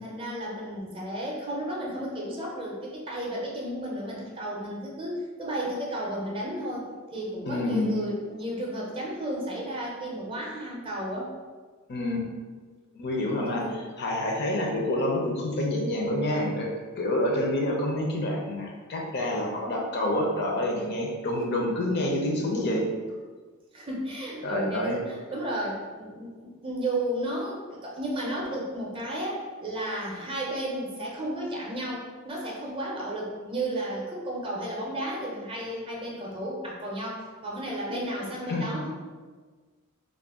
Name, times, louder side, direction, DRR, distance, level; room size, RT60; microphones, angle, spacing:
voice 1, 0.0-11.3 13.2-13.8 14.5-14.8 23.7-38.9, right 1 dB, 25° right, -3 dB, 0.5 m, -33 dB
voice 2, 7.4-8.0 11.9-12.3 12.9-13.7 14.0-16.7 17.0-22.8 24.4-25.0 38.5-38.7, left 1 dB, 50° left, 0 dB, 0.5 m, -27 dB
2.4 x 2.1 x 3.5 m, 1.5 s
head